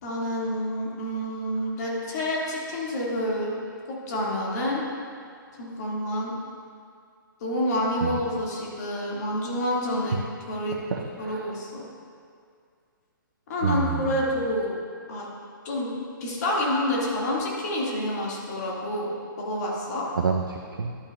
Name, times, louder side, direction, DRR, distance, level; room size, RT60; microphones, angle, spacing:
voice 1, 0.0-3.5 3.9-4.8 5.6-6.3 7.4-10.2 10.5-10.8 11.2-11.8 13.5-14.8 15.1-15.3 15.6-15.9 16.2-19.1 19.4-20.1, left 1 dB, 50° left, -4 dB, 2.2 m, -28 dB
voice 2, 10.9-11.5 13.6-14.2 20.2-20.9, right 5 dB, 75° right, 2 dB, 0.7 m, -28 dB
11.5 x 8.5 x 2.4 m, 2.2 s
hypercardioid pair, 135°, 12 cm